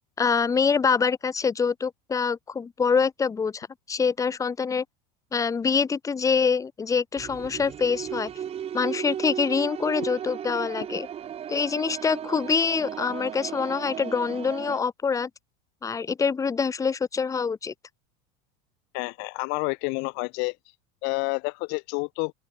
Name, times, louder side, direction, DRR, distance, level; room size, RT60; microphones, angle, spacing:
voice 1, 0.2-4.8 5.3-8.3 8.7-11.1 11.5-15.3 15.8-17.7, left 5 dB, 15° left, 1.4 m, -25 dB
sound 1, 7.2-14.8, right 9 dB, 30° right, 2.6 m, -35 dB
voice 2, 18.9-20.6 21.0-22.3, left 31 dB, 60° left, 1.4 m, -29 dB
open air
supercardioid pair, 130°, 20 cm